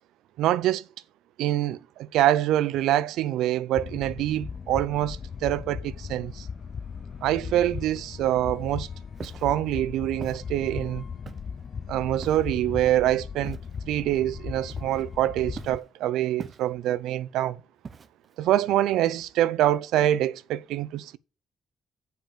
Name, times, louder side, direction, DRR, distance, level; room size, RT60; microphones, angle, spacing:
voice 1, 0.4-0.8 1.4-6.5 7.2-8.9 9.2-11.0 11.9-13.6 13.8-17.6 18.4-21.2, right 13 dB, 90° right, 0.5 m, -25 dB
sound 1, 3.7-15.8, left 6 dB, 45° left, 0.4 m, -38 dB
Walk footsteps, 9.1-9.5 10.2-10.4 11.3-11.6 12.2-12.6 13.4-13.8 14.7-15.2 15.6-15.9 16.4-16.9 17.8-18.3, right 5 dB, 40° right, 0.8 m, -41 dB
7.3 x 5.8 x 7.1 m
cardioid pair, 90°, 0 cm